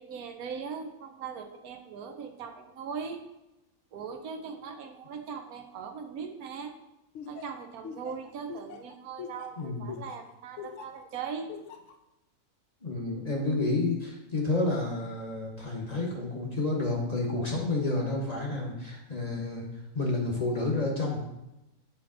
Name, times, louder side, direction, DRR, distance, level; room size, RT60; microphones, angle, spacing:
voice 1, 0.0-3.2 3.9-6.7 7.3-11.5, right 6 dB, 85° right, 6 dB, 1.2 m, -40 dB
Laughter, 7.1-11.0 11.5-11.9, left 7 dB, 65° left, 0.8 m, -42 dB
voice 2, 12.8-19.7 19.9-21.2, left 2 dB, 30° left, -1 dB, 0.9 m, -30 dB
7.8 x 3.3 x 3.7 m, 0.92 s
omnidirectional pair, 1.5 m